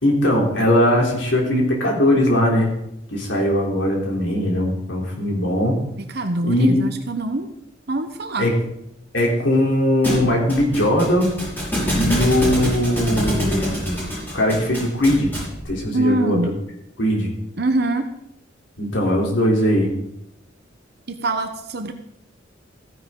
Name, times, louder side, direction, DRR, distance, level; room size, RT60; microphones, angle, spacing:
voice 1, 0.0-2.7 3.1-5.8 6.5-6.8 8.4-8.5 9.1-11.3 11.9-14.0 14.3-15.3 15.7-16.4 17.0-17.3 18.8-19.9, left 1 dB, 75° left, -1 dB, 3.6 m, -19 dB
voice 2, 6.0-7.5 7.9-8.5 15.9-16.5 17.6-18.1 21.1-21.9, right 2 dB, 60° right, 7 dB, 0.9 m, -24 dB
Thump thud, 10.0-15.6, equal, 10° left, 5.6 m, -26 dB
15.0 x 10.0 x 3.9 m, 0.80 s
head